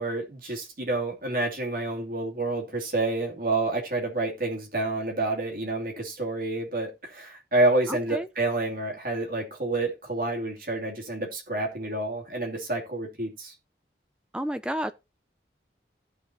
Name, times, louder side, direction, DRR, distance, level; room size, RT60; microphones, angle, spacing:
voice 1, 0.0-13.5, right 2 dB, 50° right, 2.7 m, -28 dB
voice 2, 7.9-8.3 14.3-14.9, equal, 5° right, 0.5 m, -31 dB
15.5 x 5.5 x 2.8 m
head